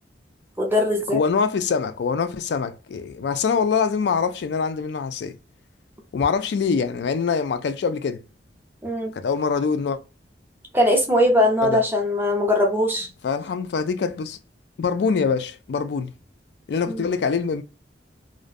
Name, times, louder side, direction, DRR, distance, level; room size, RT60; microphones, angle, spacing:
voice 1, 0.6-1.2 8.8-9.1 10.7-13.1 16.9-17.0, left 1 dB, 10° right, 0.6 m, -20 dB
voice 2, 1.1-5.4 6.1-8.2 9.1-10.0 11.6-11.8 13.2-14.4 14.8-16.1 16.7-17.6, left 5 dB, 65° left, 0.3 m, -24 dB
2.5 x 2.0 x 2.5 m
head